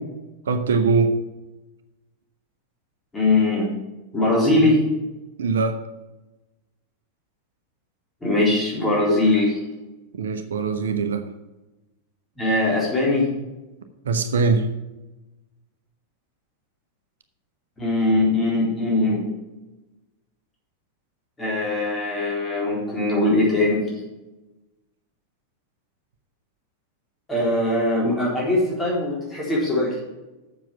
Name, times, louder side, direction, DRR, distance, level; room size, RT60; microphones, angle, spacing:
voice 1, 0.5-1.1 5.4-5.8 10.1-11.2 14.0-14.7, right 4 dB, 65° right, 8 dB, 0.9 m, -21 dB
voice 2, 3.1-3.7 4.1-4.8 8.2-9.6 12.4-13.3 17.8-19.2 21.4-23.8 27.3-30.0, left 2 dB, 10° left, -5 dB, 3.9 m, -21 dB
7.5 x 6.8 x 7.1 m, 1.1 s
figure-of-eight pair, 90°, 0 cm